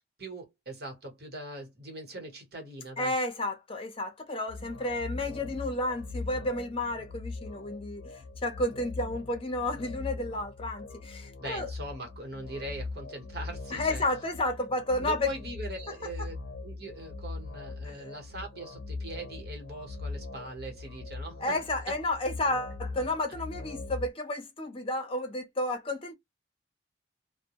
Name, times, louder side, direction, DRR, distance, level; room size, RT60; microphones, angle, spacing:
voice 1, 0.2-3.1 11.4-14.0 15.0-16.4 16.6-21.6, right 1 dB, 60° right, 1.1 m, -41 dB
voice 2, 3.0-11.7 13.7-15.3 17.8-17.9 21.4-26.1, left 1 dB, 30° left, 0.7 m, -31 dB
sound 1, 4.5-24.1, left 3 dB, 90° left, 0.5 m, -41 dB
2.2 x 2.1 x 2.8 m
head